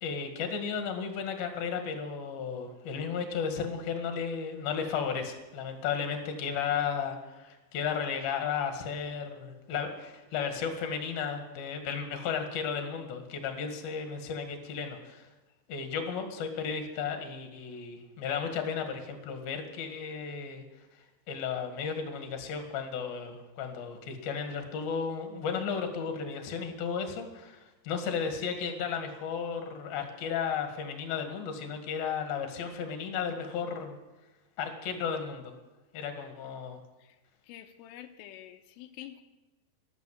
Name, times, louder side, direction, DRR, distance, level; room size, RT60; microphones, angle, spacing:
voice 1, 0.0-15.3 15.7-20.6 21.0-34.0 34.6-35.5 35.9-36.8, left 6 dB, 60° left, 5 dB, 3.3 m, -34 dB
voice 2, 37.5-39.2, left 12 dB, 85° left, 6 dB, 3.4 m, -47 dB
13.5 x 13.0 x 7.5 m, 1.1 s
omnidirectional pair, 5.6 m